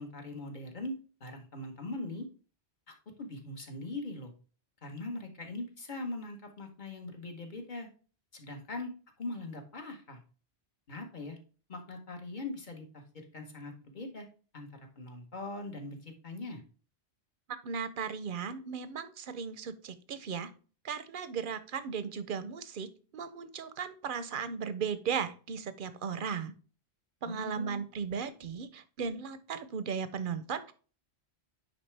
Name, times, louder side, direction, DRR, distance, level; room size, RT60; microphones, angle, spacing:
voice 1, 0.0-2.3 2.9-4.3 4.8-7.9 8.3-8.9 9.2-10.2 10.9-11.4 11.7-14.3 14.5-16.6 27.2-27.8, left 2 dB, 45° left, 3 dB, 1.3 m, -41 dB
voice 2, 17.6-20.5 20.8-26.5 27.2-30.7, right 6 dB, 55° right, 13 dB, 0.7 m, -36 dB
9.4 x 3.7 x 3.3 m, 0.38 s
omnidirectional pair, 1.1 m